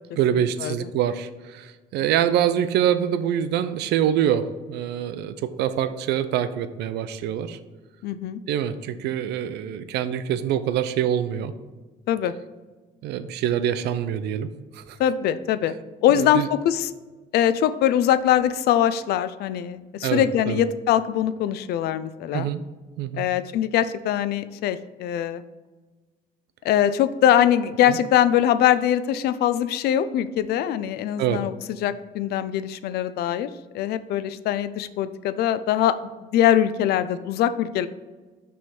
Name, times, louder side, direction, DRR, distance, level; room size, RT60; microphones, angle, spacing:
voice 1, 0.2-7.6 8.5-11.5 13.0-14.5 14.7-15.0 16.1-16.5 20.0-20.6 22.3-22.6 23.0-23.3 27.9-28.0 31.2-31.4, right 10 dB, 80° right, 12 dB, 0.5 m, -25 dB
voice 2, 8.0-8.4 12.1-12.3 15.0-15.7 16.0-16.9 17.3-22.5 23.2-25.4 26.6-31.5 31.8-33.5 33.7-36.0 36.3-37.9, left 10 dB, 70° left, 13 dB, 0.4 m, -22 dB
6.2 x 3.5 x 6.0 m, 1.3 s
cardioid pair, 110°, 17 cm